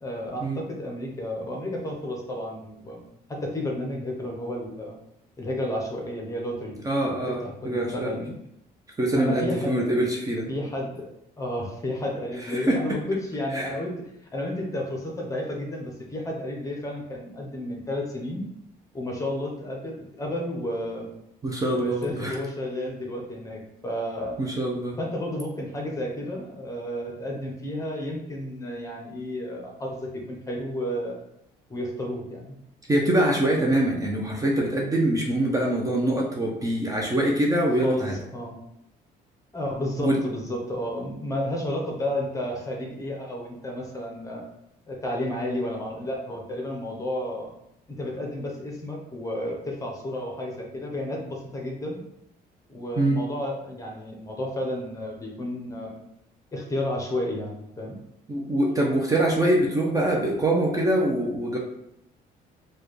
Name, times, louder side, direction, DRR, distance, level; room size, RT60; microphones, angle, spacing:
voice 1, 0.0-3.0 3.3-5.0 5.4-7.1 7.4-8.3 9.1-9.9 10.5-11.0 11.4-18.5 18.9-21.1 21.7-24.4 25.0-31.2 31.7-32.5 37.8-38.6 39.5-44.4 44.9-47.5 48.0-52.0 52.7-56.0 56.5-57.9, left 1 dB, 20° left, 0 dB, 0.9 m, -32 dB
voice 2, 6.8-8.2 9.0-10.5 12.5-13.0 13.5-13.7 21.4-22.4 24.4-25.0 32.9-38.2 40.0-40.2 53.0-53.2 58.3-61.6, right 1 dB, 20° right, -1 dB, 0.7 m, -24 dB
4.6 x 2.4 x 3.2 m, 0.80 s
cardioid pair, 110°, 17 cm